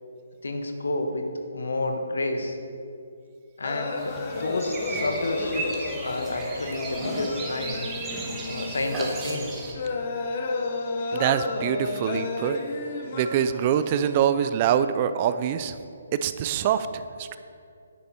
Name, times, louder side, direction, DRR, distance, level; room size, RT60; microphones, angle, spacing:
voice 1, 0.4-1.3 1.5-2.6 3.6-7.9 8.5-9.6, left 2 dB, 85° left, 5 dB, 1.4 m, -30 dB
sound 1, 3.6-14.2, left 3 dB, 40° left, 1.0 m, -32 dB
sound 2, 4.0-9.7, right 3 dB, 15° right, 1.2 m, -35 dB
voice 2, 11.1-12.6 13.1-15.8 16.2-17.4, right 9 dB, 30° right, 11 dB, 0.4 m, -24 dB
10.0 x 9.7 x 4.4 m, 2.4 s
hypercardioid pair, 160°, 0 cm